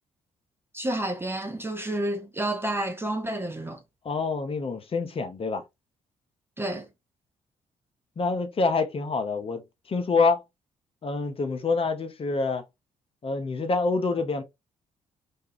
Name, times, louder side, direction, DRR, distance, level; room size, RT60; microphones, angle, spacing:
voice 1, 0.7-3.8 6.6-6.9, right 1 dB, 15° right, 0.4 m, -30 dB
voice 2, 4.0-5.6 8.2-10.4 11.0-12.6 13.2-14.4, left 4 dB, 35° left, 0.6 m, -26 dB
2.4 x 2.3 x 2.8 m
figure-of-eight pair, 45°, 17 cm